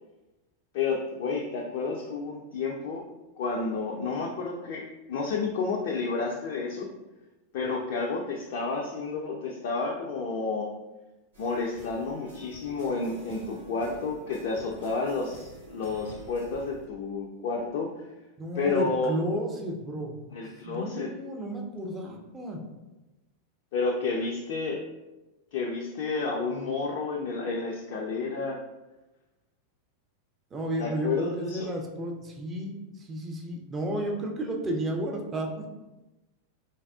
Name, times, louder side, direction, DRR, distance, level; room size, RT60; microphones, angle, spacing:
voice 1, 0.7-3.1 3.4-6.9 7.5-10.7 11.4-17.9 18.6-19.1 20.3-21.1 23.7-24.8 25.5-28.6 30.8-31.7, left 4 dB, 50° left, -1 dB, 0.3 m, -30 dB
sound 1, 11.3-16.9, right 2 dB, 65° right, 0.9 m, -49 dB
voice 2, 18.4-20.2 20.5-22.6 30.5-35.7, right 1 dB, 20° right, 1 dB, 0.5 m, -32 dB
3.2 x 2.3 x 2.3 m, 1.0 s
figure-of-eight pair, 90°, 0 cm